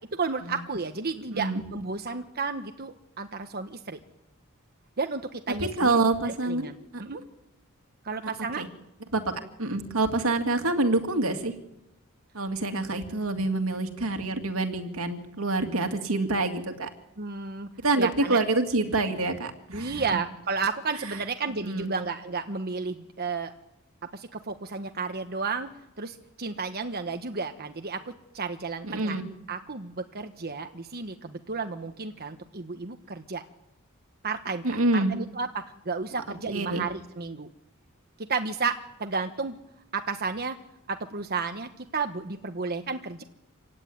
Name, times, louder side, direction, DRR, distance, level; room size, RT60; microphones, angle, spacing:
voice 1, 0.1-4.0 5.0-7.2 8.0-8.7 17.2-17.7 18.0-18.4 19.7-23.5 24.1-25.7 26.0-29.2 29.5-33.4 34.2-37.5 38.2-39.6 39.9-40.6 40.9-43.2, right 4 dB, 45° right, 6 dB, 1.2 m, -32 dB
voice 2, 1.3-1.6 5.6-7.0 8.2-8.3 8.6-8.7 9.1-9.3 9.6-11.5 12.3-16.9 17.8-20.0 21.6-21.9 28.8-29.2 34.6-35.1 36.5-36.8, right 2 dB, 80° right, 5 dB, 2.5 m, -26 dB
26.5 x 16.5 x 9.5 m, 0.89 s
head